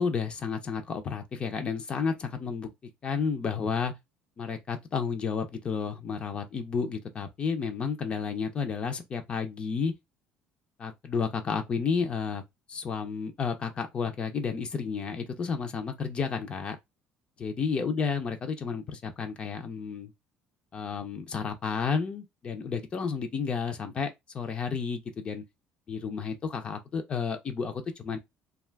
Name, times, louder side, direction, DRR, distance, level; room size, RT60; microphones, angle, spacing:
voice 1, 0.0-2.7 3.0-3.9 4.4-9.9 10.8-12.4 12.7-16.8 17.4-20.1 20.7-25.4 25.9-28.2, left 5 dB, 30° left, 0.5 m, -31 dB
2.4 x 2.3 x 3.3 m
cardioid pair, 145°, 4 cm